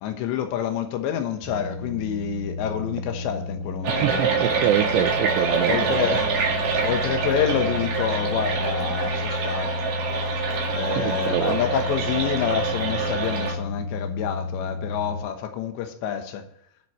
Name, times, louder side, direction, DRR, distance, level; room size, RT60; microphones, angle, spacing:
voice 1, 0.0-4.1 5.4-6.3 6.8-9.8 10.7-16.4, left 9 dB, 80° left, 3.3 m, -28 dB
sound 1, 1.4-15.2, left 3 dB, 10° right, 2.1 m, -32 dB
sound 2, 3.8-13.5, right 5 dB, 55° right, 3.4 m, -26 dB
voice 2, 4.0-5.9 11.0-11.6, right 13 dB, 80° right, 2.8 m, -25 dB
22.5 x 7.7 x 3.1 m
omnidirectional pair, 5.1 m